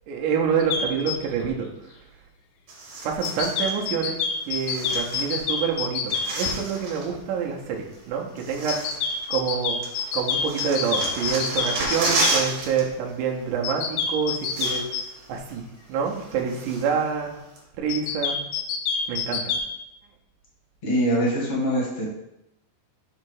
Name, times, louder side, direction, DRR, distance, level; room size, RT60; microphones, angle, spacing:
voice 1, 0.1-1.7 3.0-4.2 4.5-8.8 9.3-9.8 10.1-14.9 15.3-15.6 15.9-17.3 17.8-18.4 19.1-19.4, right 6 dB, 70° right, 0 dB, 2.0 m, -27 dB
sound 1, 0.6-1.2 3.2-6.5 8.7-12.4 13.6-15.0 17.9-19.7, left 6 dB, 80° left, 2.3 m, -26 dB
sound 2, 2.7-3.8 4.5-5.6 5.9-7.1 7.9-8.0 8.4-9.5 9.8-12.8 13.1-13.3 14.1-14.2 14.4-15.1 15.5-15.6 16.1-17.0 17.6-17.7, right 2 dB, 55° right, 2.5 m, -31 dB
voice 2, 20.8-22.1, equal, 40° left, -4 dB, 0.8 m, -23 dB
7.6 x 3.2 x 4.7 m, 0.85 s
omnidirectional pair, 4.7 m